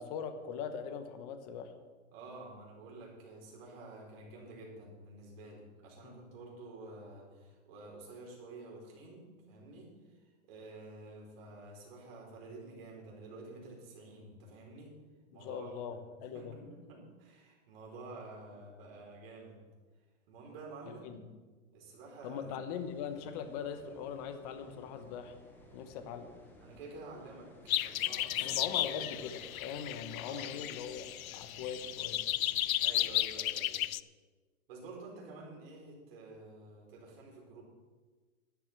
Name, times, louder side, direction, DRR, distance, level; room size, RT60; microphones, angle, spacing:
voice 1, 0.0-1.7 6.0-6.1 15.3-16.6 20.9-21.2 22.2-25.4 25.7-26.3 28.4-32.2, left 7 dB, 30° left, 9 dB, 1.1 m, -41 dB
voice 2, 2.1-10.2 10.5-15.0 15.3-15.7 16.3-19.6 20.3-21.2 21.7-22.4 26.6-28.6 29.0-29.1 30.2-30.5 32.8-33.8 34.7-37.6, right 2 dB, 45° right, -2 dB, 5.1 m, -50 dB
sound 1, 22.7-33.3, left 1 dB, 5° left, 1.2 m, -58 dB
sound 2, 27.7-34.0, left 13 dB, 85° left, 0.6 m, -34 dB
12.0 x 12.0 x 6.1 m, 1.4 s
hypercardioid pair, 160°, 41 cm